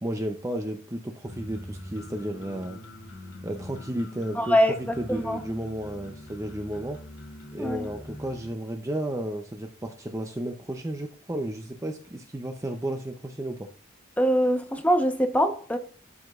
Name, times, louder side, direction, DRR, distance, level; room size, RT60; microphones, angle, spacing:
voice 1, 0.0-2.8 3.4-7.0 7.5-13.7, right 1 dB, 15° right, 0.6 m, -33 dB
sound 1, 1.2-8.5, left 1 dB, 70° left, 3.0 m, -43 dB
voice 2, 4.3-5.4 7.6-7.9 14.2-15.8, equal, 5° left, 1.0 m, -23 dB
12.0 x 5.0 x 2.4 m
head